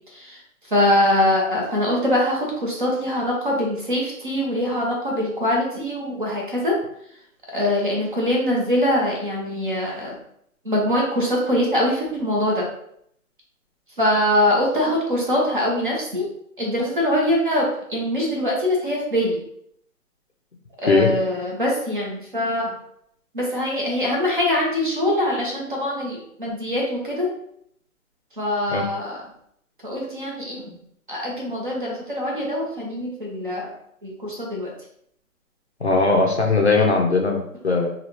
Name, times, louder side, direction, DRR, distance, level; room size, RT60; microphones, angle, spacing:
voice 1, 0.1-6.8 7.5-10.2 10.6-12.6 14.0-16.3 16.6-19.4 20.8-22.8 23.3-27.3 28.3-29.2 29.8-30.7 31.1-33.7 34.0-34.7, left 1 dB, 35° right, -2 dB, 0.9 m, -23 dB
voice 2, 35.8-37.9, left 3 dB, 50° left, 1 dB, 0.5 m, -19 dB
4.2 x 2.3 x 3.1 m, 0.71 s
hypercardioid pair, 175°, 44 cm